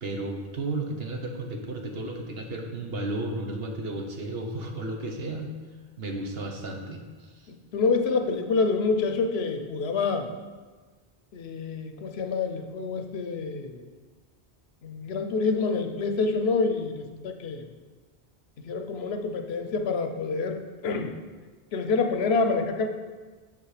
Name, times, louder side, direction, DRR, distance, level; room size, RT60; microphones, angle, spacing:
voice 1, 0.0-5.5 6.0-7.5, right 2 dB, 70° right, 2 dB, 1.2 m, -33 dB
voice 2, 7.5-10.3 11.3-13.9 14.8-17.7 18.6-21.2 21.7-22.9, left 4 dB, 75° left, 5 dB, 1.0 m, -27 dB
6.8 x 5.9 x 4.9 m, 1.4 s
omnidirectional pair, 1.1 m